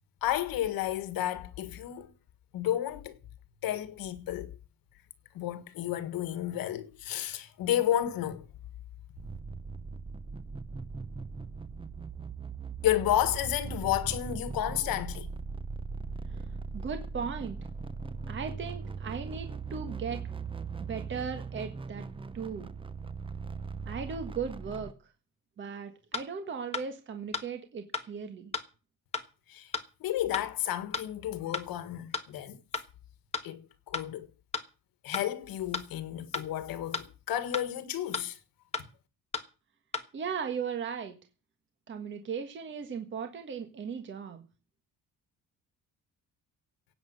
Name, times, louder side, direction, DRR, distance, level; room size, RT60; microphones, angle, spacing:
voice 1, 0.2-2.1 2.5-3.2 3.6-4.5 5.3-8.4 12.8-15.3 29.5-29.7 30.0-32.6 33.4-34.3 35.0-38.4, left 12 dB, 85° left, 1.7 m, -31 dB
sound 1, 9.2-24.9, right 5 dB, 15° right, 0.7 m, -39 dB
voice 2, 16.7-17.6 18.3-20.2 20.8-22.1 22.3-22.7 23.8-24.9 25.6-28.5 40.1-41.1 41.9-44.4, right 6 dB, 35° right, 1.5 m, -37 dB
sound 2, 26.1-26.2 26.7-26.8 27.3-27.4 27.9-28.0 28.5-28.6 29.1-29.2 29.7-29.8 30.3-30.4 30.9-31.0 31.5-31.6 32.1-32.2 32.7-32.8 33.3-33.4 33.9-34.0 34.5-34.6 35.1-35.2 35.7-35.8 36.3-36.4 36.9-37.0 37.5-37.6 38.1-38.2 38.7-38.8 39.3-39.4 39.9-40.0, left 4 dB, 20° left, 1.3 m, -33 dB
17.0 x 8.8 x 6.4 m
cardioid pair, 165°, 35 cm